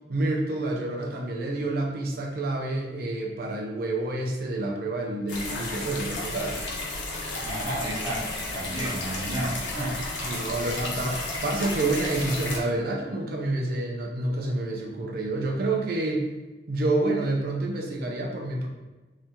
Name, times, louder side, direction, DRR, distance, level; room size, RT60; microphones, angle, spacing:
voice 1, 0.1-6.6 10.2-16.3 16.7-18.7, right 2 dB, 55° right, 0 dB, 0.4 m, -28 dB
sound 1, 5.3-12.6, left 2 dB, 90° left, 0.8 m, -33 dB
voice 2, 7.4-10.0, right 1 dB, 25° right, -8 dB, 0.9 m, -32 dB
2.8 x 2.7 x 3.4 m, 1.2 s
head